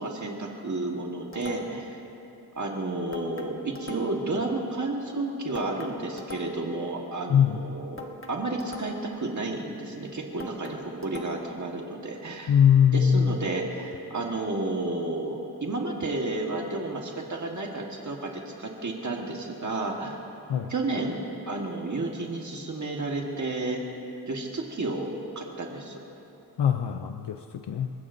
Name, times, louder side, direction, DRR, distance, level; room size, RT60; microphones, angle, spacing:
voice 1, 0.0-2.0 2.5-12.5 12.9-20.2 20.7-21.2 21.5-23.8 24.3-26.0, right 2 dB, 45° right, 0 dB, 1.6 m, -31 dB
sound 1, 1.3-1.9 3.1-4.3 5.5-6.8 8.0-9.2 10.4-11.6, left 2 dB, 30° left, 1.2 m, -43 dB
voice 2, 7.3-7.6 12.5-13.4 20.5-20.7 26.6-27.9, left 8 dB, 85° left, 7 dB, 0.6 m, -22 dB
30.0 x 16.0 x 2.7 m, 2.9 s
wide cardioid pair, 155°, 40 cm